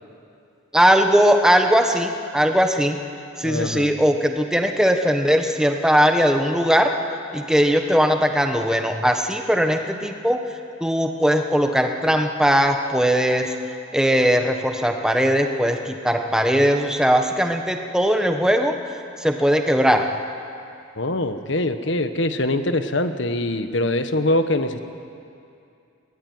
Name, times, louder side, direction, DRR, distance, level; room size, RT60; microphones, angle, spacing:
voice 1, 0.7-3.0 3.4-6.9 7.3-10.4 10.8-13.5 13.9-18.8 19.2-20.1, equal, 5° right, 4 dB, 1.2 m, -19 dB
voice 2, 3.4-3.9 21.0-24.8, left 1 dB, 60° left, 9 dB, 1.3 m, -23 dB
22.5 x 18.5 x 9.6 m, 2.6 s
head